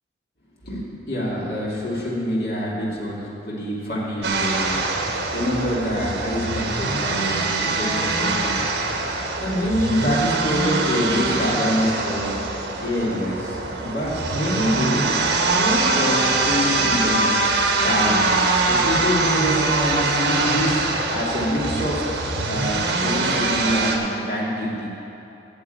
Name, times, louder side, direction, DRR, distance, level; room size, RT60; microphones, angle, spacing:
voice 1, 0.6-4.8 5.3-8.7 9.4-12.3 12.8-15.1 15.3-17.2 17.8-18.3 18.7-20.8 21.1-22.0 22.5-24.9, equal, 55° left, -5 dB, 2.5 m, -25 dB
sound 1, 4.2-24.0, right 3 dB, 75° right, 1.2 m, -23 dB
9.4 x 7.0 x 7.9 m, 2.9 s
head